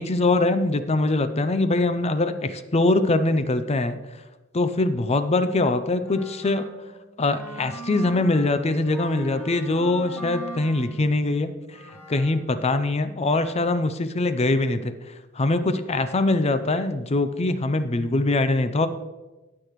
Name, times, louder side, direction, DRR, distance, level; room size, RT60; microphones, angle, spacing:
voice 1, 0.0-4.0 4.5-6.7 7.2-11.5 12.1-14.9 15.4-18.9, left 2 dB, 30° left, 11 dB, 0.5 m, -23 dB
Wind instrument woodwind instrument, 6.0-12.6, right 1 dB, 10° left, 2.3 m, -40 dB
18.5 x 6.6 x 3.2 m, 1.1 s
head